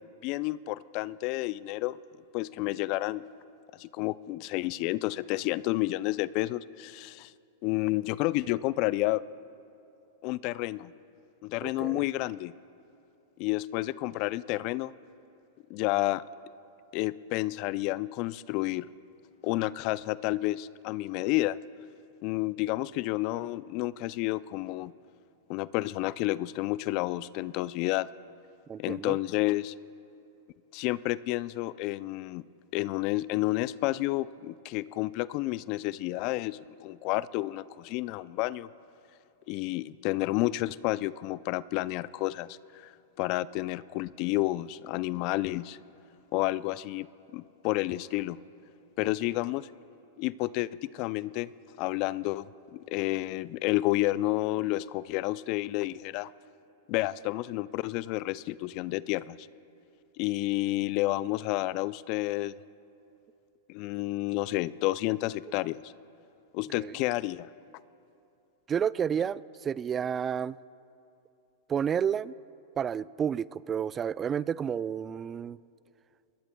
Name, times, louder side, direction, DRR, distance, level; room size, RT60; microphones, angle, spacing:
voice 1, 0.2-2.0 2.3-3.2 3.8-7.3 7.6-9.2 10.2-10.9 11.4-12.5 13.4-14.9 15.7-16.2 16.9-18.9 19.4-21.6 22.2-24.9 25.5-28.1 28.8-29.7 30.7-32.4 32.7-38.7 39.5-42.9 43.2-45.8 46.3-47.1 47.3-48.4 49.0-49.7 50.2-51.5 51.8-56.3 56.9-59.5 60.2-62.6 63.7-65.9 66.5-67.5, left 18 dB, 50° left, 19 dB, 0.4 m, -30 dB
voice 2, 11.6-12.0 28.7-29.2 49.0-49.1 66.8-66.9 68.7-70.6 71.7-72.3 72.8-75.6, right 8 dB, 25° right, 19 dB, 0.3 m, -30 dB
26.5 x 20.5 x 2.2 m, 2.7 s
hypercardioid pair, 105°, 0 cm